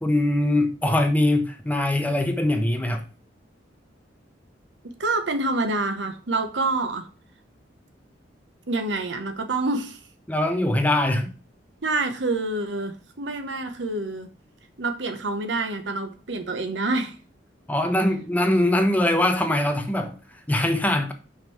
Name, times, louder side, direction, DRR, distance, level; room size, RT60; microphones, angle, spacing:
voice 1, 0.0-3.0 10.3-11.3 17.7-20.2 20.5-21.1, left 1 dB, 10° left, 0.9 m, -22 dB
voice 2, 5.0-7.1 8.7-10.0 11.8-14.3 14.8-17.2, right 2 dB, 80° right, 1.1 m, -27 dB
5.7 x 5.3 x 4.7 m
head